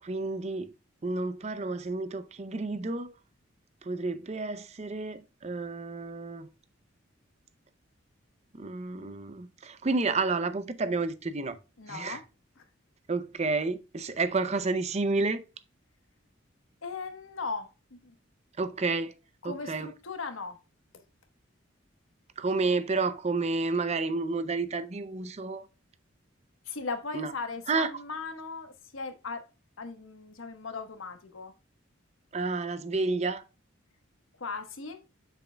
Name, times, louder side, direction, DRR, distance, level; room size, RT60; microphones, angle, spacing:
voice 1, 0.0-0.7 1.0-3.1 3.8-6.5 8.5-11.6 11.9-12.2 13.1-15.4 18.6-19.1 19.4-19.9 22.4-25.7 27.1-27.3 27.7-27.9 32.3-33.4, right 3 dB, 35° right, 0.5 m, -30 dB
voice 2, 11.8-12.2 12.6-12.7 16.8-18.1 19.4-20.6 26.6-29.4 29.8-31.5 34.4-35.0, left 4 dB, 85° left, 1.2 m, -38 dB
7.8 x 6.9 x 2.2 m
head